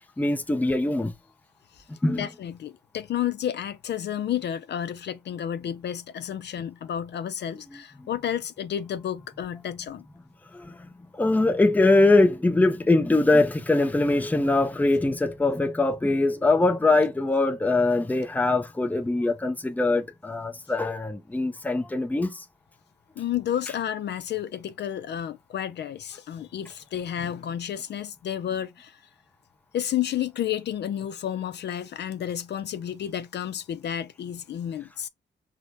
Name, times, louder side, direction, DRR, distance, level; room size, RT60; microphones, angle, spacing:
voice 1, 0.2-1.1 2.0-2.3 7.5-7.6 8.0-8.1 10.5-22.4, left 2 dB, 10° left, 0.5 m, -22 dB
voice 2, 1.7-10.0 23.2-29.0 29.7-35.1, left 10 dB, 60° left, 0.4 m, -31 dB
4.8 x 2.2 x 3.8 m
cardioid pair, 115°, 20 cm